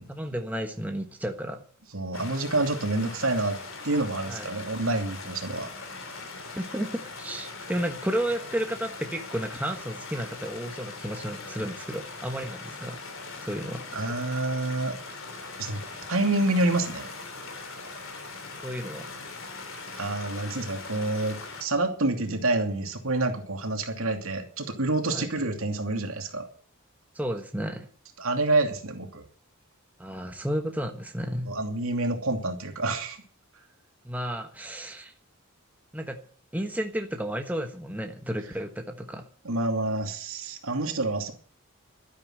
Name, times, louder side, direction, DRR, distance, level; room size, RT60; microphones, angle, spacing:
voice 1, 0.1-1.6 4.3-4.5 6.5-13.0 13.4-13.9 18.6-19.1 25.1-25.3 27.1-27.9 30.0-31.6 34.0-35.1 35.9-36.2 36.5-39.3, equal, 5° right, 4 dB, 1.3 m, -32 dB
voice 2, 1.9-3.6 3.8-5.7 13.9-15.0 15.6-15.8 16.1-17.1 19.9-26.5 28.2-29.3 31.5-33.2 39.4-41.3, right 2 dB, 75° right, 4 dB, 2.8 m, -28 dB
sound 1, 2.1-21.6, left 3 dB, 65° left, 3.5 m, -41 dB
12.5 x 10.0 x 7.8 m, 0.43 s
head